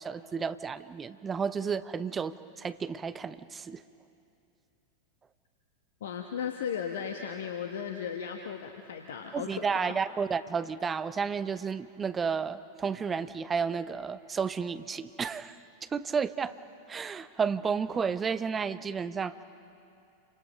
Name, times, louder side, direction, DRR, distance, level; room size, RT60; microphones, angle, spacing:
voice 1, 0.0-3.8 9.3-15.6 15.8-16.5 16.9-19.4, right 6 dB, 20° right, 13 dB, 0.7 m, -32 dB
voice 2, 6.0-10.0, left 7 dB, 60° left, 4 dB, 1.2 m, -36 dB
28.5 x 25.5 x 5.3 m, 2.6 s
figure-of-eight pair, 90°, 0 cm